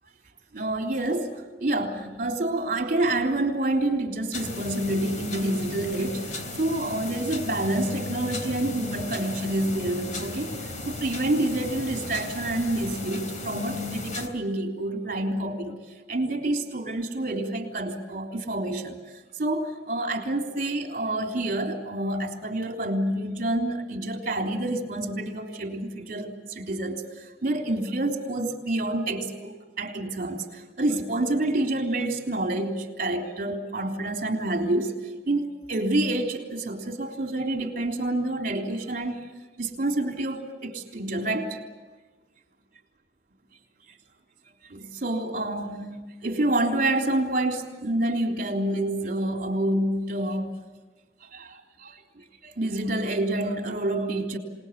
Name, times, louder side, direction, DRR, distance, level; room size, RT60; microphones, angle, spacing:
voice 1, 0.5-10.6 10.9-39.2 39.6-41.6 44.7-50.5 51.3-54.4, right 1 dB, 50° right, 2 dB, 3.6 m, -28 dB
sound 1, 4.3-14.3, left 2 dB, 45° left, 3.4 m, -35 dB
27.5 x 19.5 x 8.3 m, 1.3 s
head